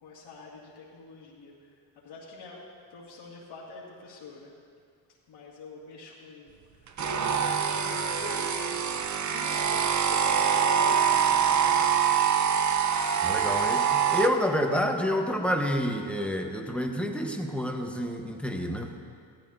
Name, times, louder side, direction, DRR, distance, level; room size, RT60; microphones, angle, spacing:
voice 1, 0.0-1.8 2.0-2.6 2.9-4.5 5.3-8.7 9.2-12.0, left 3 dB, 80° left, -8 dB, 2.2 m, -45 dB
sound 1, 7.0-14.3, right 7 dB, 45° right, 0.7 m, -25 dB
voice 2, 13.2-18.9, equal, 5° left, 3 dB, 1.2 m, -28 dB
15.5 x 12.5 x 2.8 m, 2.2 s
cardioid pair, 70°, 42 cm